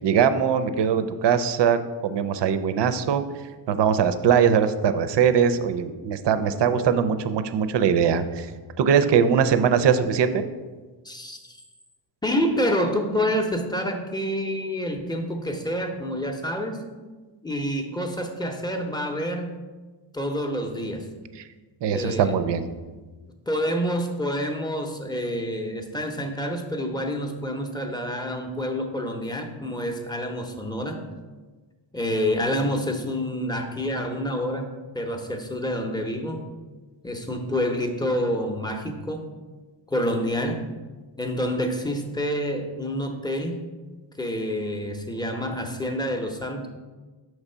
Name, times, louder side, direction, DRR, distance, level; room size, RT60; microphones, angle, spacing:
voice 1, 0.0-3.2 3.7-8.5 8.8-10.4 21.8-22.7, right 7 dB, 60° right, 11 dB, 0.5 m, -21 dB
voice 2, 11.0-11.6 12.2-16.8 17.4-19.5 20.1-21.1 21.9-22.3 23.5-31.0 31.9-36.5 37.0-39.3 39.9-40.7 41.2-43.6 44.2-46.7, equal, 10° left, 4 dB, 0.6 m, -28 dB
6.0 x 3.2 x 5.5 m, 1.3 s
wide cardioid pair, 90°, 49 cm